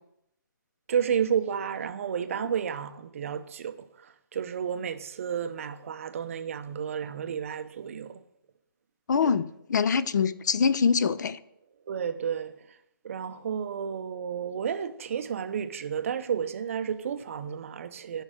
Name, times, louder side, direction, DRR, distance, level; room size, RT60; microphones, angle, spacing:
voice 1, 0.9-8.2 9.2-9.4 11.9-12.8 13.0-18.2, right 7 dB, 35° right, 0.5 m, -32 dB
voice 2, 9.1-11.4, left 6 dB, 50° left, 0.4 m, -24 dB
10.0 x 5.3 x 6.1 m
hypercardioid pair, 160°, 12 cm